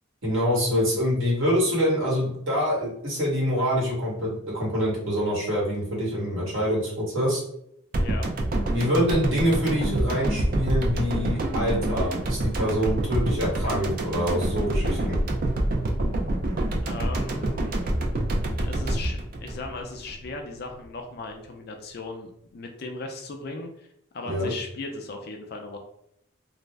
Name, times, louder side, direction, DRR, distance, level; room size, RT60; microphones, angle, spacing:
voice 1, 0.2-7.4 8.7-15.2 24.2-24.5, equal, 75° right, -4 dB, 1.2 m, -25 dB
voice 2, 7.9-8.3 16.8-17.8 18.6-23.9 24.1-25.8, left 3 dB, 50° left, 3 dB, 0.4 m, -37 dB
sound 1, 7.9-20.3 20.6-20.7, right 1 dB, 45° right, 0.3 m, -27 dB
2.5 x 2.0 x 3.2 m, 0.74 s
head